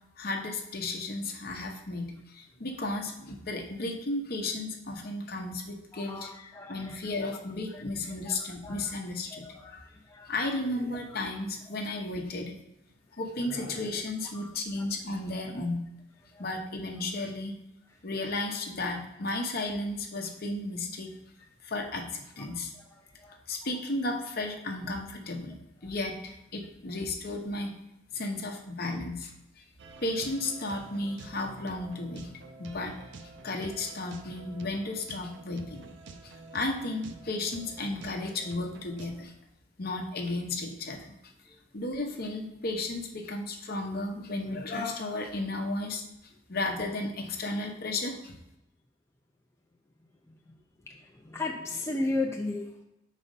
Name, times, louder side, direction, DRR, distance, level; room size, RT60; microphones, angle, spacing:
voice 1, 0.2-6.3 6.7-9.4 10.3-12.5 13.1-15.8 16.4-17.6 18.0-21.1 21.6-22.7 23.5-25.6 25.8-27.8 28.1-29.6 30.0-32.3 32.6-32.9 33.4-35.9 36.2-39.3 39.8-41.1 41.7-46.0 46.5-48.3, left 2 dB, 55° left, 3 dB, 0.9 m, -34 dB
voice 2, 5.9-7.0 7.7-7.8 8.3-9.0 9.3-10.3 14.3-14.5 16.3-16.4 22.7-23.4 50.9-52.7, left 2 dB, 15° left, 0 dB, 0.5 m, -36 dB
sound 1, 29.8-39.2, right 3 dB, 65° right, 0.5 m, -48 dB
5.1 x 4.2 x 5.2 m, 0.88 s
head